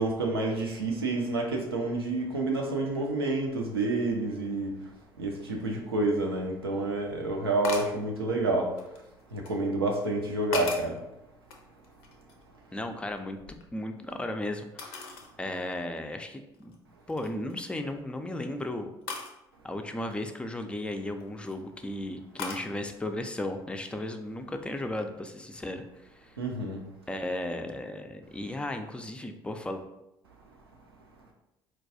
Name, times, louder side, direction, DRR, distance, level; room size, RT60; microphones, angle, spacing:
voice 1, 0.0-4.7 5.2-8.7 9.3-11.0 26.4-26.8, right 2 dB, 90° right, 1 dB, 0.5 m, -29 dB
sound 1, 7.6-8.0 8.8-9.6 10.2-11.0 11.5-12.5 12.8-14.1 14.8-15.3 15.8-15.9 16.5-16.8 17.1-17.5 19.1-19.3 21.0-21.5 22.4-22.7, left 4 dB, 75° left, 0.5 m, -38 dB
voice 2, 12.7-16.7 17.1-18.9 19.6-26.4 27.1-29.8, left 1 dB, 10° left, 6 dB, 0.4 m, -35 dB
4.2 x 2.2 x 2.6 m, 0.89 s
figure-of-eight pair, 55°, 12 cm